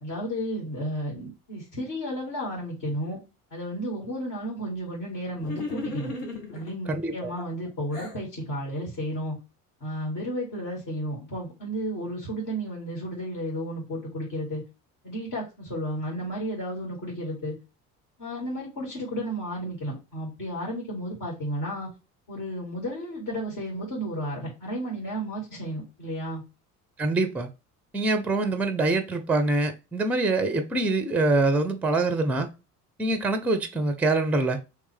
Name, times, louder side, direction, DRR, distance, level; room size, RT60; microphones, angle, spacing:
voice 1, 0.0-3.2 3.5-6.1 6.5-9.4 9.8-14.6 15.0-17.6 18.2-21.9 22.3-26.4, equal, 50° left, 2.1 m, -33 dB
sound 1, 5.4-6.7 7.4-8.2, left 3 dB, 80° left, 1.0 m, -35 dB
voice 2, 6.9-7.3 27.0-27.5 27.9-32.5 33.0-34.6, right 2 dB, 5° right, 0.5 m, -24 dB
3.2 x 3.1 x 3.5 m
figure-of-eight pair, 55°, 46 cm